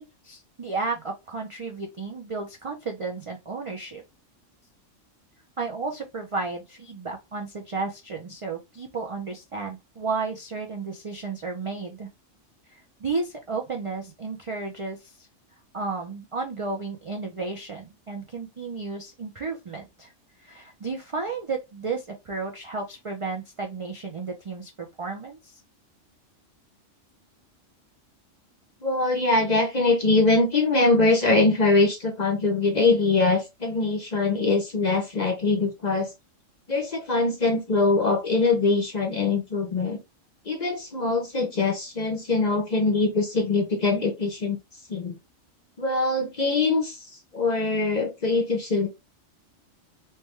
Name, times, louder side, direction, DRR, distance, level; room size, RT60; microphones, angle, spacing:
voice 1, 0.0-4.0 5.6-12.1 12.7-15.3 15.7-20.1 20.4-25.6, right 4 dB, 55° right, 0.3 m, -33 dB
voice 2, 28.8-36.1 36.7-40.0 40.5-44.6 44.9-45.1 45.8-47.0 47.3-48.9, left 3 dB, 45° left, 0.6 m, -23 dB
3.3 x 2.2 x 3.0 m
omnidirectional pair, 1.3 m